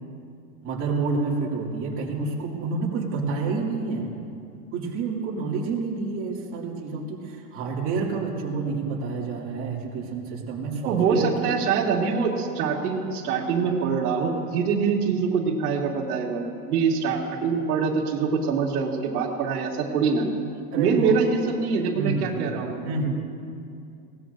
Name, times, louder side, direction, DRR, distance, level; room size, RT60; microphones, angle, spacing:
voice 1, 0.6-4.1 4.7-11.5 20.7-21.2 22.0-22.5 22.8-23.1, right 4 dB, 30° right, -4 dB, 2.5 m, -28 dB
voice 2, 10.8-20.3 20.8-22.7, right 5 dB, 80° right, -2 dB, 2.5 m, -24 dB
21.5 x 19.0 x 2.6 m, 2.4 s
supercardioid pair, 160°, 44 cm